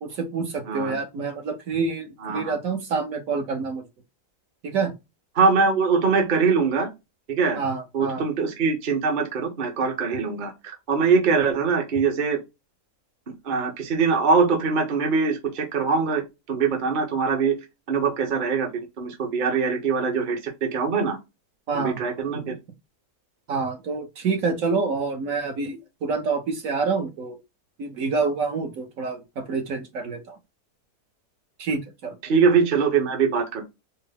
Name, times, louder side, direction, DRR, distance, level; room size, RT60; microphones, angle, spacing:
voice 1, 0.0-3.8 4.6-4.9 7.5-8.2 21.7-22.1 23.5-27.4 27.8-30.4 31.6-32.2, right 4 dB, 60° right, 1.1 m, -27 dB
voice 2, 2.2-2.5 5.4-6.9 7.3-7.6 7.9-12.4 13.4-16.2 16.5-17.6 17.9-18.7 19.0-21.2 21.7-22.5 32.2-33.6, right 5 dB, 40° right, 0.8 m, -22 dB
4.4 x 2.1 x 3.3 m
omnidirectional pair, 1.7 m